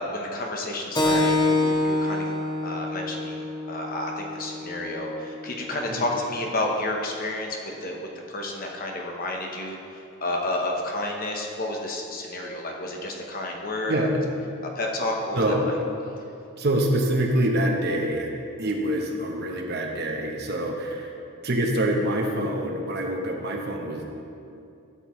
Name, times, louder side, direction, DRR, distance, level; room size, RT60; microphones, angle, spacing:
voice 1, 0.0-2.3 2.6-9.8 10.2-14.1 14.7-15.7, left 1 dB, 40° left, 0 dB, 1.0 m, -31 dB
Keyboard (musical), 0.9-6.0, left 2 dB, 20° left, 0.9 m, -27 dB
voice 2, 15.3-15.7 16.6-18.3 18.6-21.1 21.4-24.1, right 1 dB, 50° right, 2 dB, 1.0 m, -25 dB
12.5 x 8.0 x 3.2 m, 2.6 s
head